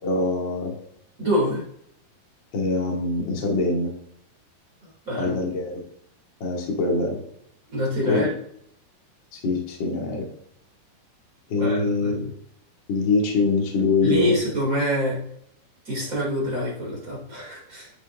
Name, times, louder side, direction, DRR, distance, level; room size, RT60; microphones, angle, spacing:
voice 1, 0.0-0.7 2.5-3.9 5.2-5.7 6.4-7.2 8.1-8.3 9.3-10.3 11.5-12.3 12.9-14.4, left 3 dB, 35° left, -1 dB, 2.2 m, -23 dB
voice 2, 1.2-1.6 5.0-5.4 7.7-8.3 11.6-12.3 14.0-15.2 15.9-17.9, equal, 20° right, -4 dB, 3.4 m, -26 dB
11.5 x 7.2 x 3.6 m, 0.70 s
omnidirectional pair, 4.7 m